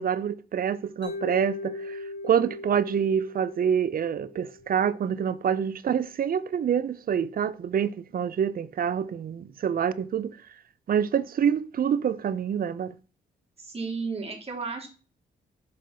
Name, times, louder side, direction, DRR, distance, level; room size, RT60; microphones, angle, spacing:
voice 1, 0.0-10.4 10.9-12.9, right 8 dB, 55° right, 0.5 m, -26 dB
Mallet percussion, 1.0-5.1, left 2 dB, 75° left, 1.6 m, -39 dB
voice 2, 13.6-14.9, right 4 dB, 35° right, 2.5 m, -33 dB
6.6 x 4.0 x 3.9 m
cardioid pair, 75°, 18 cm